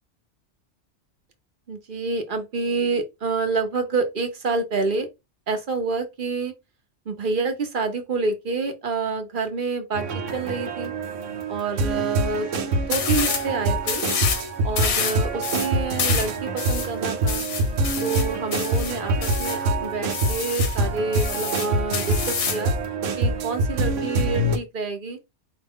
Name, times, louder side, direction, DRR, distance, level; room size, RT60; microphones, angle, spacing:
voice 1, 1.7-5.1 5.5-6.5 7.1-10.9 11.5-12.5 12.8-14.0 14.6-17.5 18.0-22.7 23.2-25.2, right 4 dB, 50° right, 0.8 m, -28 dB
sound 1, 9.9-24.6, right 2 dB, 85° right, 1.1 m, -25 dB
sound 2, 12.9-13.5 13.8-14.4 14.8-19.6 20.1-20.8 21.1-22.7, left 6 dB, 80° left, 1.2 m, -28 dB
4.9 x 2.2 x 3.5 m
omnidirectional pair, 1.3 m